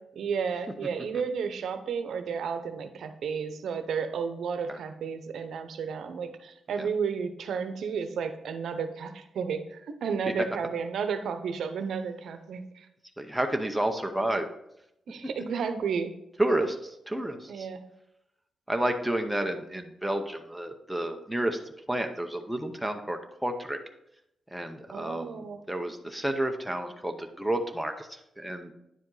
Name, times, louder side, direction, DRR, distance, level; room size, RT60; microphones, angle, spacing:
voice 1, 0.2-12.9 15.1-16.1 17.5-17.8 24.9-25.6, right 6 dB, 80° right, 8 dB, 0.7 m, -32 dB
voice 2, 13.2-14.5 16.4-17.7 18.7-21.6 21.9-23.8 24.5-28.7, right 1 dB, ahead, 4 dB, 0.6 m, -30 dB
9.6 x 5.0 x 3.9 m, 0.80 s
wide cardioid pair, 150°, 0 cm